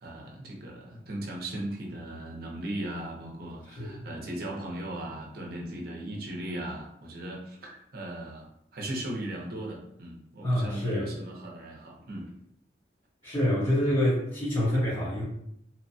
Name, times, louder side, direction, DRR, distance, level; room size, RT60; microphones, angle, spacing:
voice 1, 0.0-12.3, right 1 dB, 55° right, -1 dB, 0.6 m, -38 dB
voice 2, 10.4-11.1 13.2-15.2, equal, 30° left, -12 dB, 1.0 m, -26 dB
2.9 x 2.1 x 2.6 m, 0.76 s
head